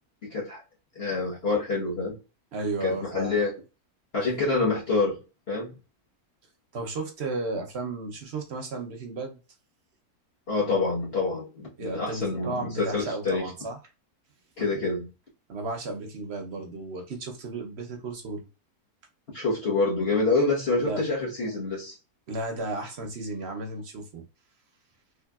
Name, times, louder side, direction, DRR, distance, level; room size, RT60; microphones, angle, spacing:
voice 1, 0.3-0.6 0.9-2.2 2.8-3.5 4.1-5.2 5.5-5.7 10.5-13.5 14.6-15.1 19.3-22.0, left 3 dB, 45° left, 1.4 m, -27 dB
voice 2, 2.5-3.4 6.7-9.4 11.8-13.8 15.5-18.5 20.8-21.0 22.3-24.2, right 2 dB, 55° right, 0.8 m, -34 dB
3.7 x 3.1 x 2.3 m
omnidirectional pair, 1.6 m